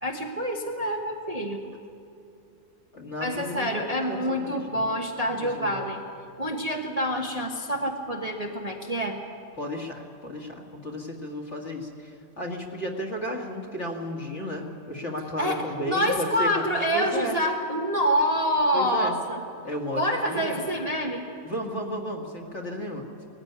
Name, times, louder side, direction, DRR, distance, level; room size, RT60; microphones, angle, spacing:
voice 1, 0.0-1.6 3.2-6.0 6.4-9.2 15.4-19.4 20.0-21.3, equal, 25° right, 0 dB, 1.2 m, -27 dB
voice 2, 2.9-4.9 5.4-5.8 9.6-16.7 16.9-17.4 18.7-19.2 19.6-20.6 21.4-23.3, equal, 40° left, 0 dB, 2.4 m, -33 dB
19.0 x 15.0 x 9.5 m, 2.6 s
omnidirectional pair, 1.9 m